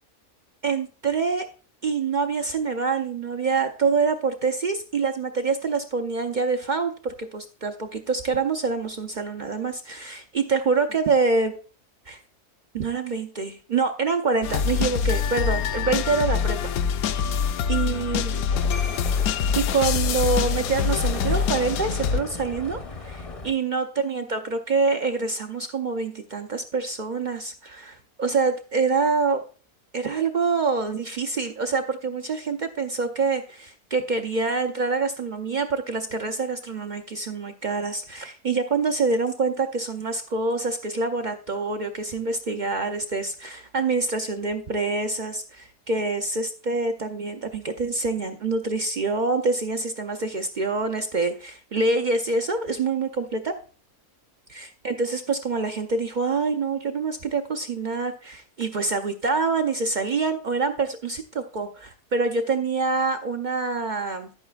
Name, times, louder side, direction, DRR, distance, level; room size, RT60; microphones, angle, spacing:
voice 1, 0.6-1.5 1.8-11.6 12.1-12.2 12.7-16.7 17.7-18.4 19.0-19.1 19.5-29.4 29.9-53.5 54.5-64.3, right 4 dB, 70° right, 6 dB, 0.4 m, -26 dB
sound 1, 14.4-22.2, left 6 dB, 75° left, 1.0 m, -25 dB
sound 2, 18.5-23.5, left 3 dB, 35° left, 0.6 m, -36 dB
11.0 x 9.0 x 2.3 m, 0.38 s
omnidirectional pair, 1.6 m